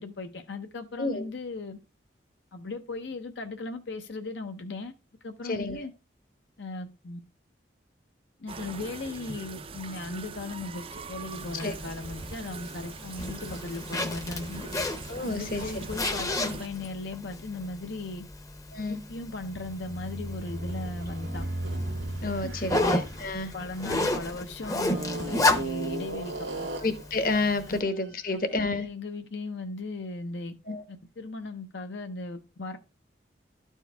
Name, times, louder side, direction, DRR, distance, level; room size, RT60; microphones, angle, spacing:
voice 1, 0.0-1.8 2.5-4.9 5.2-5.9 6.6-7.2 8.4-14.7 15.2-18.2 18.9-21.4 22.4-22.8 23.5-26.7 27.7-27.8 28.3-30.6 30.9-32.8, left 3 dB, 75° left, 0.7 m, -37 dB
voice 2, 5.4-5.9 11.6-11.7 15.1-15.7 18.7-19.0 22.2-23.5 26.8-28.9 30.7-30.8, left 3 dB, 50° left, 0.9 m, -30 dB
sound 1, 8.5-16.7, right 4 dB, 30° right, 0.4 m, -42 dB
Zipper (clothing), 11.3-27.8, left 2 dB, 20° left, 0.7 m, -33 dB
sound 2, 19.4-24.3 24.9-27.1, right 1 dB, 90° right, 1.5 m, -36 dB
12.5 x 4.6 x 3.3 m
head